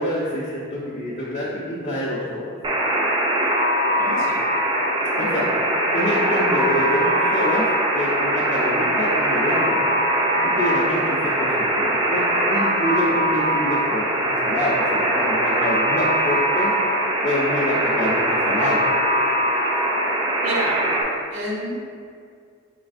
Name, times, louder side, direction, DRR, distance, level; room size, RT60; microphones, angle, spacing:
voice 1, 0.0-2.4 5.2-5.5 5.9-7.7 7.9-9.8 10.4-16.7 17.2-18.8, left 1 dB, 35° left, -6 dB, 0.4 m, -26 dB
Alarm, 2.6-21.0, right 1 dB, 25° right, 0.3 m, -21 dB
voice 2, 4.0-4.4 10.3-10.6 20.4-20.8 21.3-21.8, right 1 dB, 70° right, -3 dB, 0.7 m, -29 dB
4.1 x 3.1 x 2.5 m, 2.2 s
head